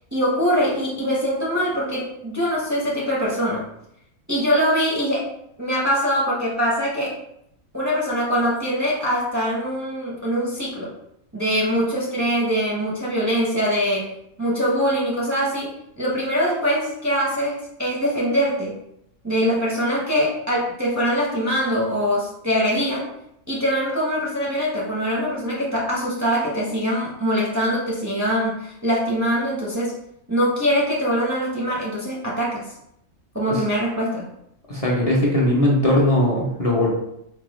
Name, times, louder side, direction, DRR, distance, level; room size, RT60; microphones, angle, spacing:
voice 1, 0.1-3.6 4.3-5.3 5.6-7.2 7.7-10.9 11.3-14.1 14.4-18.7 19.2-23.1 23.5-29.9 30.3-32.7 33.3-34.3, equal, 25° right, -5 dB, 0.4 m, -23 dB
voice 2, 34.7-36.9, left 1 dB, 40° left, -4 dB, 0.5 m, -19 dB
4.5 x 2.3 x 3.0 m, 0.77 s
omnidirectional pair, 1.4 m